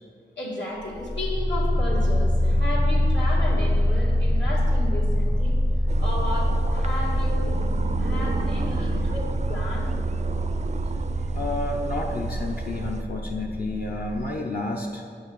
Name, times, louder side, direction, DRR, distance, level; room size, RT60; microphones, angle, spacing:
voice 1, 0.4-5.5 6.0-7.6 8.0-9.9, left 2 dB, 80° left, -6 dB, 2.4 m, -33 dB
sound 1, 0.8-14.3, left 1 dB, 20° left, 0.7 m, -25 dB
sound 2, 5.9-13.0, right 5 dB, 40° right, 0.4 m, -31 dB
voice 2, 11.3-15.0, left 2 dB, 55° left, -1 dB, 0.8 m, -30 dB
8.2 x 6.3 x 6.3 m, 2.2 s
wide cardioid pair, 65°, 18 cm